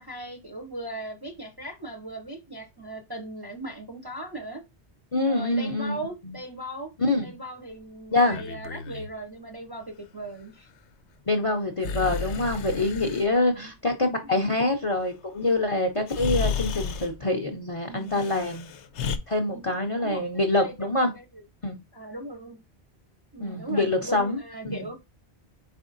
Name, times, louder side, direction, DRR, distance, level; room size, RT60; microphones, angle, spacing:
voice 1, 0.0-4.6 5.3-6.9 7.2-9.8 10.1-10.7 13.5-13.7 14.2-14.6 17.8-18.3 19.5-19.6 20.0-21.4 21.9-22.6 23.3-24.9, right 2 dB, 30° right, 0.5 m, -38 dB
voice 2, 5.1-6.0 6.2-6.4 7.0-7.3 8.1-8.4 11.3-18.7 19.3-21.1 21.6-21.8 23.4-24.4 24.6-24.9, left 2 dB, 40° left, 0.5 m, -25 dB
Breathing, 8.2-9.1 11.8-13.3 15.4-15.5 16.1-17.2 18.1-19.2, left 6 dB, 85° left, 0.9 m, -32 dB
4.7 x 4.2 x 2.5 m
omnidirectional pair, 1.2 m